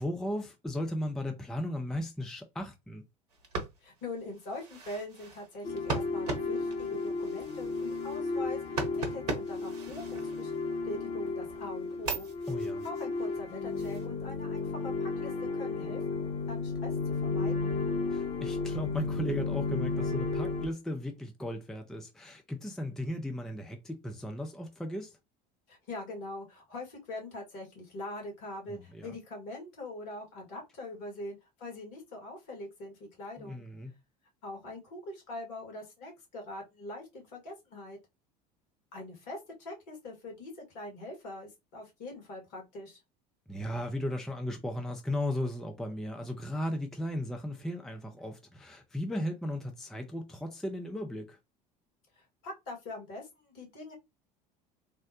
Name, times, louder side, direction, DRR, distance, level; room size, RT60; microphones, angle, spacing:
voice 1, 0.0-3.0 12.5-12.8 18.1-25.2 28.7-29.1 33.4-33.9 43.5-51.4, left 1 dB, ahead, 0.5 m, -36 dB
sound 1, 3.3-11.0 11.4-14.1, right 4 dB, 70° right, 0.9 m, -40 dB
voice 2, 3.8-10.5 10.8-12.3 12.8-17.7 25.7-33.6 34.4-38.0 38.9-43.0 52.2-53.9, left 2 dB, 55° left, 1.8 m, -43 dB
sound 2, 5.6-20.7, left 3 dB, 30° left, 0.9 m, -33 dB
3.5 x 2.1 x 2.8 m
figure-of-eight pair, 65°, 21 cm